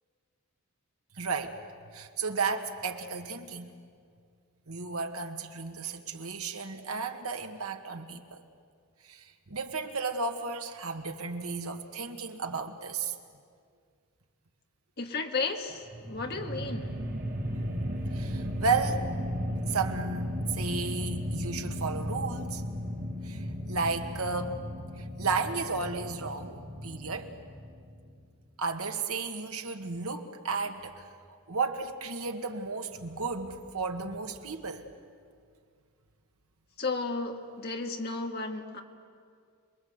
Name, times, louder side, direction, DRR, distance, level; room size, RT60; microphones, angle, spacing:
voice 1, 1.2-1.6 1.9-3.7 4.7-8.4 9.1-13.1 18.1-19.1 19.7-22.6 23.2-24.6 25.0-27.3 28.6-31.1 31.5-34.8, right 4 dB, 80° right, 5 dB, 1.7 m, -33 dB
voice 2, 15.0-16.9 36.8-38.8, left 3 dB, 45° left, 3 dB, 1.8 m, -33 dB
sound 1, 15.9-28.2, equal, 40° right, 3.7 m, -35 dB
27.0 x 22.0 x 8.0 m, 2.1 s
head